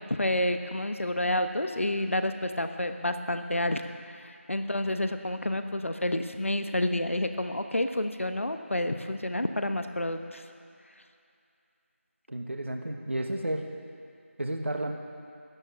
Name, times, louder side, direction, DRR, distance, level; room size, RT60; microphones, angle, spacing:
voice 1, 0.0-3.8 4.1-10.4, left 1 dB, 65° left, 8 dB, 1.1 m, -29 dB
voice 2, 12.3-13.7 14.4-14.9, right 1 dB, 60° right, 3 dB, 1.3 m, -32 dB
14.0 x 9.2 x 8.8 m, 2.6 s
figure-of-eight pair, 175°, 8 cm